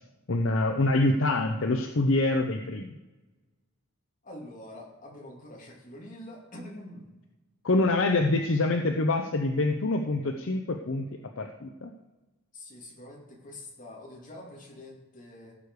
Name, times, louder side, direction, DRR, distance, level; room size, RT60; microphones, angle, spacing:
voice 1, 0.3-2.9 7.6-11.1 11.4-11.9, left 2 dB, 60° left, 4 dB, 0.7 m, -25 dB
voice 2, 4.2-7.1 12.5-15.5, left 1 dB, 35° left, -2 dB, 2.6 m, -45 dB
16.0 x 6.6 x 4.8 m, 1.1 s
head